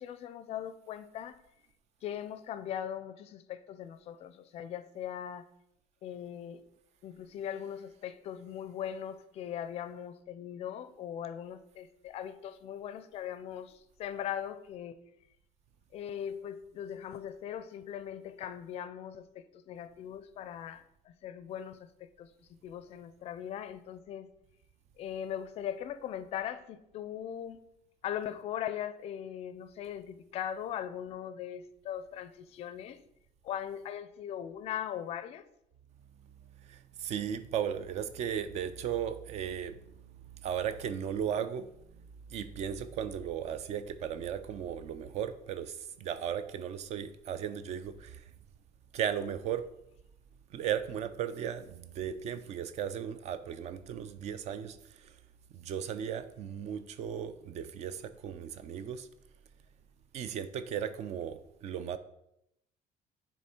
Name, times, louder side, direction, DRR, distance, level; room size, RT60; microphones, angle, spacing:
voice 1, 0.0-1.4 2.0-5.5 6.0-6.6 7.0-15.0 15.9-22.3 22.6-24.3 25.0-27.6 28.0-33.0 33.4-35.4, left 10 dB, 45° left, 13 dB, 0.4 m, -40 dB
voice 2, 36.6-41.7 42.3-48.3 48.9-49.7 50.5-55.2 55.5-59.1 60.1-62.0, right 8 dB, 45° right, 12 dB, 0.4 m, -36 dB
9.5 x 3.5 x 4.3 m, 0.78 s
cardioid pair, 180°, 15 cm